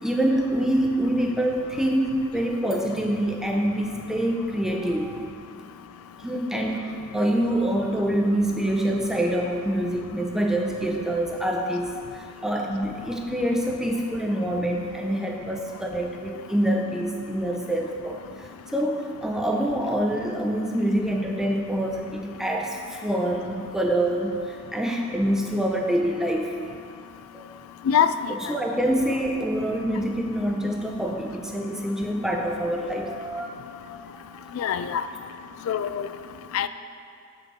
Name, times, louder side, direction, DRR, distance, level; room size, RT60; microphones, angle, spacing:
voice 1, 0.0-5.3 6.2-26.5 27.3-27.5 28.0-33.6 34.6-34.9, right 1 dB, ahead, 0 dB, 0.6 m, -26 dB
voice 2, 27.9-28.3 34.6-35.0 35.7-36.1 36.5-36.7, left 8 dB, 90° left, 14 dB, 0.3 m, -23 dB
7.5 x 5.2 x 4.7 m, 2.4 s
head